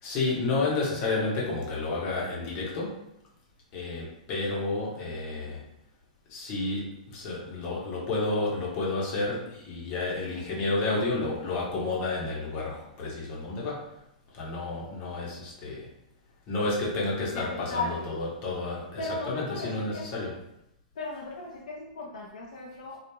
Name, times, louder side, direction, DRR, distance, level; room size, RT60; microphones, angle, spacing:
voice 1, 0.0-3.0 3.7-5.6 6.3-13.9 14.3-15.9 16.5-20.3, left 3 dB, 40° left, -4 dB, 1.0 m, -31 dB
voice 2, 17.3-18.1 19.0-20.0 21.0-23.0, left 2 dB, 75° left, -2 dB, 0.5 m, -36 dB
2.9 x 2.4 x 2.3 m, 0.83 s
hypercardioid pair, 125°, 4 cm